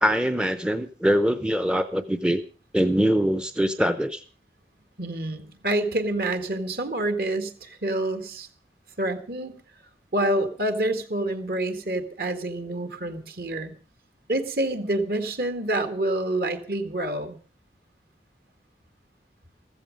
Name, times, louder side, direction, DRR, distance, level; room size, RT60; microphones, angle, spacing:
voice 1, 0.0-2.4 2.7-4.2, equal, 5° right, 11 dB, 0.6 m, -23 dB
voice 2, 5.0-8.5 9.0-9.5 10.1-13.7 14.3-17.4, right 1 dB, 55° right, 9 dB, 1.9 m, -27 dB
15.0 x 14.5 x 5.2 m, 0.39 s
head